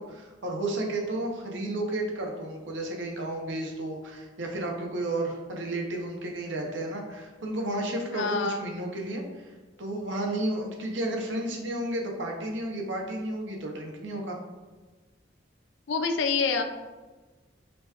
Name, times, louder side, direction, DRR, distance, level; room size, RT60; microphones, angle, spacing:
voice 1, 0.0-9.2 9.8-14.4, right 1 dB, 85° right, 1 dB, 0.7 m, -32 dB
voice 2, 8.1-8.7 15.9-16.6, left 5 dB, 80° left, 6 dB, 0.4 m, -27 dB
5.2 x 2.3 x 2.8 m, 1.3 s
head